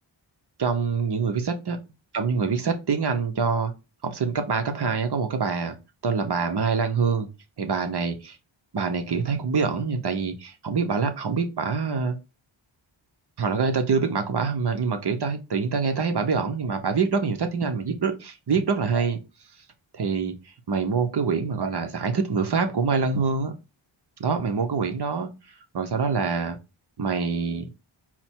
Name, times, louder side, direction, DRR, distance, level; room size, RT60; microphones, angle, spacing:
voice 1, 0.6-1.8 2.1-3.7 4.0-5.8 6.0-7.3 7.6-8.4 8.7-12.2 13.4-19.2 19.9-20.3 20.7-23.6 24.2-25.3 25.7-26.6 27.0-27.7, right 5 dB, 55° right, 0.8 m, -25 dB
4.3 x 2.1 x 4.4 m
wide cardioid pair, 95°, 48 cm